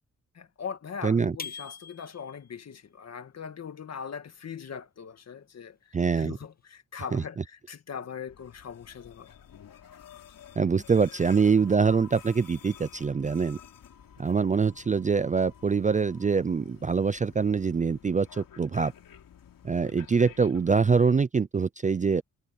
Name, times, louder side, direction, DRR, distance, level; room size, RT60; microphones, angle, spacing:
voice 1, 0.3-9.3, left 7 dB, 50° left, 1.7 m, -40 dB
voice 2, 1.0-1.3 5.9-6.4 7.1-7.2 10.6-13.6 14.2-18.9 19.6-22.2, right 5 dB, 25° right, 0.4 m, -24 dB
sound 1, 1.4-2.5, left 5 dB, 25° left, 0.8 m, -41 dB
sound 2, 8.3-20.7, left 9 dB, 75° left, 3.5 m, -51 dB
wide cardioid pair, 165°, 33 cm